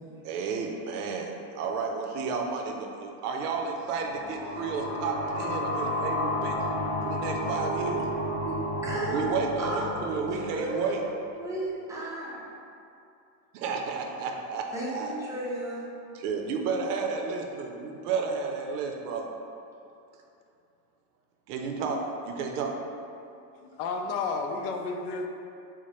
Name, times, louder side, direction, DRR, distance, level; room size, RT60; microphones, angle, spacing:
voice 1, 0.2-6.6 7.0-8.1 9.1-11.0 13.5-15.1 16.1-19.3 21.5-22.8, right 5 dB, 80° right, 2 dB, 0.6 m, -32 dB
sound 1, 3.8-11.2, left 1 dB, 30° left, 1.3 m, -32 dB
voice 2, 8.8-12.4 14.7-15.9, right 1 dB, 5° right, -7 dB, 0.5 m, -34 dB
voice 3, 23.6-25.3, left 4 dB, 65° left, 3 dB, 0.5 m, -31 dB
4.4 x 2.1 x 3.0 m, 2.6 s
supercardioid pair, 120°, 46 cm